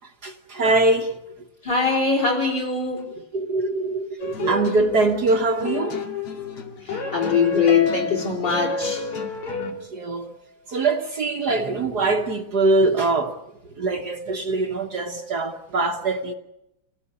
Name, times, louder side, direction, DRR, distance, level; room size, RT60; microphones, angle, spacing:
voice 1, 0.0-1.2 3.2-6.0 8.6-8.7 9.5-10.3 10.7-13.4 13.8-16.3, right 3 dB, 50° right, 1.7 m, -23 dB
voice 2, 1.6-3.1 6.9-9.0, left 5 dB, 50° left, 5.3 m, -22 dB
sound 1, 4.2-9.7, left 3 dB, 85° left, 3.3 m, -31 dB
Harp, 7.7-10.1, left 1 dB, 25° left, 1.6 m, -33 dB
27.5 x 17.5 x 9.8 m
omnidirectional pair, 2.4 m